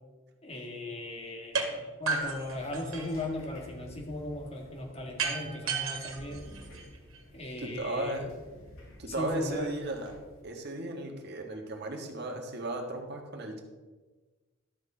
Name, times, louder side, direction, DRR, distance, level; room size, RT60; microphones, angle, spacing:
voice 1, 0.4-6.4 7.3-8.3 9.1-9.7, left 1 dB, 30° left, 1 dB, 1.9 m, -38 dB
sound 1, 1.5-1.7 2.1-3.3 5.2-7.2, right 4 dB, 85° right, 1.9 m, -33 dB
sound 2, 2.2-10.4, left 1 dB, 85° left, 2.8 m, -52 dB
voice 2, 7.6-8.3 9.0-10.1 10.4-13.6, right 1 dB, 55° right, 3 dB, 1.6 m, -35 dB
12.5 x 6.5 x 5.0 m, 1.3 s
head